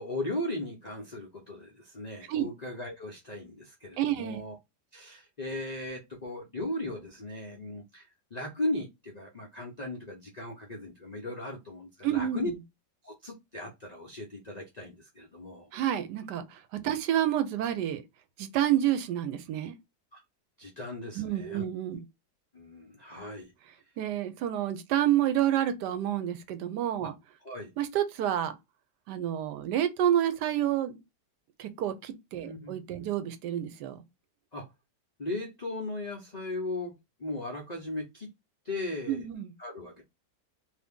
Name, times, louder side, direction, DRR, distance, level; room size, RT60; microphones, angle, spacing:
voice 1, 0.0-4.6 4.9-8.1 8.3-12.5 13.0-15.7 20.1-20.2 20.6-21.6 22.5-23.5 27.0-27.1 27.4-27.7 32.4-32.8 34.5-34.7 35.2-36.9 37.2-38.3 38.6-39.3 39.6-40.0, left 1 dB, 60° left, 0.4 m, -37 dB
voice 2, 4.0-4.4 12.0-12.5 15.7-18.0 18.4-19.7 21.1-22.0 24.0-27.1 27.8-28.5 29.1-31.0 31.6-34.0 39.1-39.5, right 11 dB, 80° right, 1.2 m, -29 dB
2.7 x 2.7 x 3.5 m
omnidirectional pair, 1.8 m